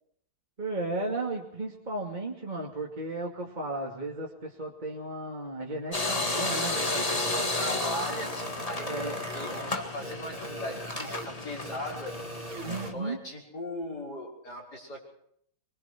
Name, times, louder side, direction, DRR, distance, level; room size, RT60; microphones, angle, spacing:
voice 1, 0.6-7.3 8.8-9.2 12.6-13.2, right 2 dB, 20° right, -2 dB, 2.9 m, -35 dB
sound 1, 5.9-12.9, left 2 dB, 20° left, 1.9 m, -32 dB
voice 2, 6.6-12.2 12.9-15.0, left 1 dB, 50° left, -1 dB, 6.4 m, -39 dB
sound 2, 6.8-8.0 8.4-9.6 10.0-11.3 11.6-12.9, right 4 dB, 85° right, 2.5 m, -42 dB
25.0 x 22.5 x 4.5 m, 0.67 s
omnidirectional pair, 2.2 m